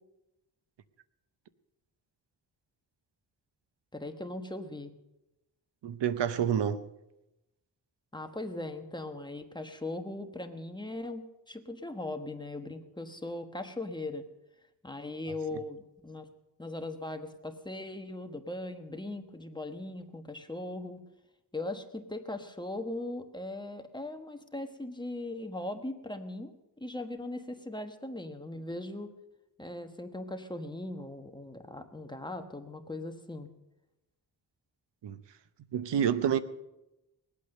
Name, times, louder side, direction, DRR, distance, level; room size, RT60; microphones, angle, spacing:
voice 1, 3.9-4.9 8.1-14.3 14.8-16.3 16.6-21.0 21.5-29.1 29.6-33.5, left 2 dB, 10° left, 1.2 m, -39 dB
voice 2, 5.8-6.9 35.0-35.2 35.7-36.4, right 8 dB, 75° right, 0.9 m, -28 dB
20.5 x 8.4 x 6.6 m
wide cardioid pair, 115°, 42 cm